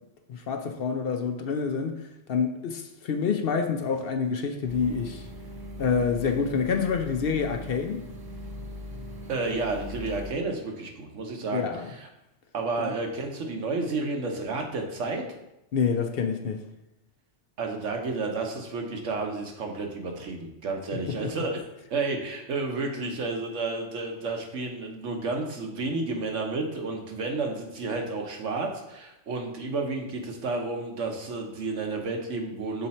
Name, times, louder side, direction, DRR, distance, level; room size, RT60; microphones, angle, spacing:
voice 1, 0.3-2.0 2.3-5.2 5.8-8.0 11.5-11.9 12.8-12.9 15.7-16.6 21.1-21.2, left 6 dB, 60° left, 0.7 m, -27 dB
sound 1, 4.7-10.3, left 1 dB, 35° right, 0.4 m, -40 dB
voice 2, 9.3-11.7 12.5-15.2 17.6-21.6 21.9-32.9, right 3 dB, 85° right, 1.3 m, -31 dB
6.5 x 4.2 x 4.2 m
omnidirectional pair, 1.3 m